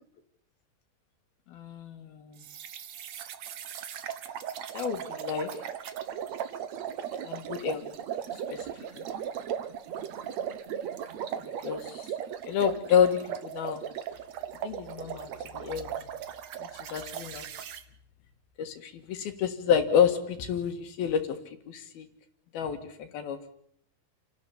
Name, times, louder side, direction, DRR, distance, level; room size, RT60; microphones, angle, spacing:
voice 1, 1.5-2.4 4.7-5.5 7.2-7.8 8.5-8.6 9.0-9.1 11.6-12.1 12.5-13.2 13.5-13.8 14.6-15.3 15.5-15.9 16.8-17.4 18.6-21.2 21.7-22.1 22.5-23.5, left 8 dB, 70° left, 7 dB, 3.3 m, -28 dB
sound 1, 2.4-17.8, right 9 dB, 60° right, 1.9 m, -37 dB
29.0 x 12.5 x 9.9 m, 0.69 s
omnidirectional pair, 4.8 m